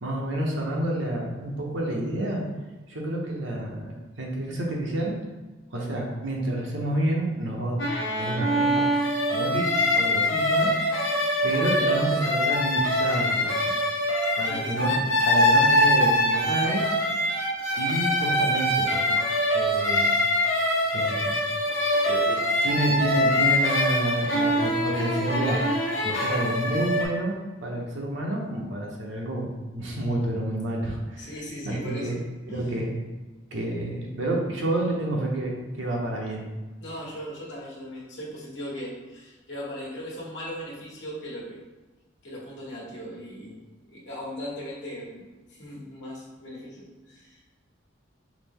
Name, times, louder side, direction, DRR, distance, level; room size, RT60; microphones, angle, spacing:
voice 1, 0.0-2.4 2.9-5.2 5.7-7.8 8.1-8.9 9.3-10.7 11.4-13.7 14.4-16.8 17.7-19.1 19.5-20.1 20.9-21.4 22.0-25.6 26.0-31.3 31.6-32.2 32.5-33.0 33.5-36.5, right 1 dB, 75° right, -1 dB, 0.8 m, -29 dB
sound 1, 7.8-27.0, left 1 dB, 85° left, 1.0 m, -24 dB
voice 2, 14.4-14.8 30.6-30.7 31.2-32.2 32.5-32.7 36.8-41.6 42.2-47.4, equal, 65° left, -5 dB, 1.2 m, -38 dB
4.9 x 2.1 x 3.5 m, 1.2 s
head